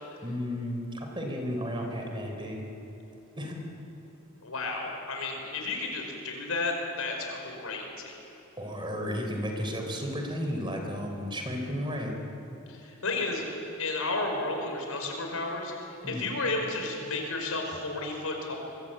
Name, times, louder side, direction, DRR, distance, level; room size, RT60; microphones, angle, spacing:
voice 1, 0.2-2.7 3.4-3.6 8.6-12.1 16.0-16.2, equal, 20° right, 2 dB, 3.7 m, -33 dB
voice 2, 4.4-8.2 12.7-13.4 13.8-18.6, left 3 dB, 75° left, 2 dB, 5.4 m, -32 dB
24.5 x 23.0 x 8.8 m, 3.0 s
head